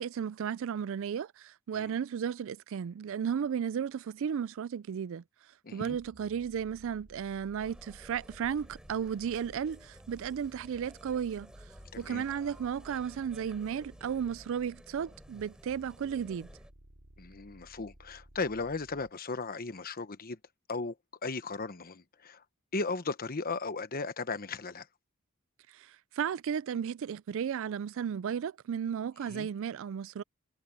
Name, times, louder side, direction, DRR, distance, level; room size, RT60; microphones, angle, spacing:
voice 1, 0.0-5.2 5.7-11.5 12.0-16.5 25.7-30.2, right 7 dB, 65° right, 0.3 m, -34 dB
voice 2, 5.6-6.0 11.9-12.2 17.2-20.4 20.7-20.9 21.2-22.4 22.7-24.9 29.2-29.5, left 3 dB, 45° left, 1.1 m, -36 dB
sound 1, 5.9-19.1, equal, 80° right, 4.2 m, -57 dB
sound 2, 7.6-16.7, equal, 5° right, 4.9 m, -54 dB
head